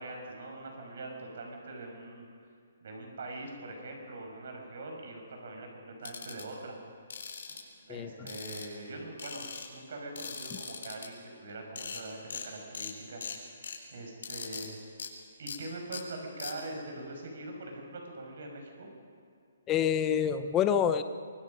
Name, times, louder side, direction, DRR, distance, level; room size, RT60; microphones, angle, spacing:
voice 1, 0.0-2.3 2.8-6.8 7.8-13.5 13.9-14.8 15.4-18.9, right 2 dB, 55° right, 2 dB, 6.0 m, -43 dB
Clicking Dial on Toy, 6.0-6.4 7.1-7.6 8.3-8.9 9.2-9.7 10.2-11.1 11.5-11.6 11.8-12.0 12.3-12.5 12.7-12.9 13.2-13.8 14.2-14.7 15.0-15.1 15.5-15.6 15.9-16.0 16.4-16.5, left 6 dB, 70° left, 4.4 m, -40 dB
voice 2, 7.9-8.3 19.7-21.0, left 8 dB, 15° left, 10 dB, 0.7 m, -27 dB
24.5 x 24.0 x 5.4 m, 2.3 s
hypercardioid pair, 170°, 0 cm